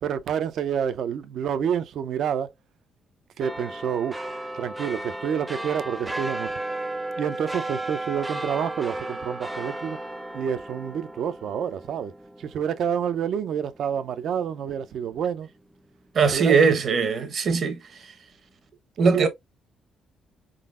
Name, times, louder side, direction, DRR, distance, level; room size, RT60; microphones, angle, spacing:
voice 1, 0.0-2.5 3.4-4.3 4.5-6.5 7.2-10.0 10.3-12.1 12.4-15.5 16.3-16.6 19.1-19.3, right 8 dB, 70° right, 0.5 m, -28 dB
sound 1, 3.4-14.2 14.6-14.7, right 2 dB, 10° right, 0.5 m, -34 dB
voice 2, 16.1-17.8 19.0-19.3, right 5 dB, 55° right, 1.0 m, -20 dB
4.1 x 3.8 x 2.4 m
cardioid pair, 115°, 0 cm